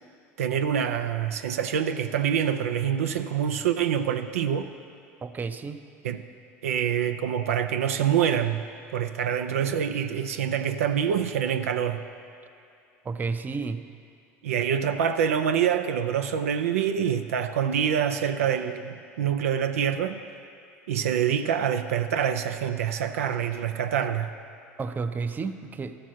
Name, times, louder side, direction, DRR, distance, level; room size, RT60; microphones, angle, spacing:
voice 1, 0.4-4.7 6.0-6.2 6.6-8.6 8.9-12.0 14.4-20.2 20.9-24.3, right 8 dB, 85° right, 9 dB, 0.4 m, -26 dB
voice 2, 5.2-5.8 13.0-13.8 24.8-26.0, right 4 dB, 25° right, 10 dB, 0.5 m, -31 dB
13.0 x 5.9 x 6.2 m, 2.5 s
hypercardioid pair, 80°, 8 cm